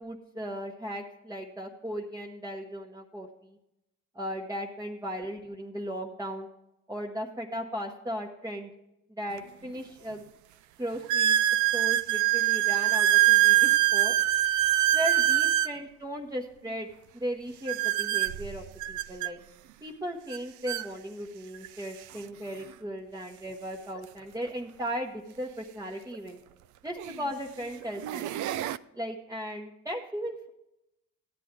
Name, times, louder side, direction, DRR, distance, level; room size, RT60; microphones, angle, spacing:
voice 1, 0.0-3.6 4.1-6.5 6.9-8.7 9.2-10.2 10.8-11.4 11.7-14.1 14.9-16.9 17.1-19.4 19.8-26.4 26.8-28.5 28.9-30.5, equal, 10° right, -1 dB, 1.1 m, -37 dB
sound 1, 9.4-9.5 10.1-10.2 11.1-15.7 17.7-19.3 20.3-20.4 20.7-20.9 21.6-21.7 24.0-24.1 26.1-26.2 27.0-27.3 27.8-28.8, right 13 dB, 75° right, 0.5 m, -24 dB
13.5 x 9.2 x 3.7 m, 0.88 s
cardioid pair, 90°, 30 cm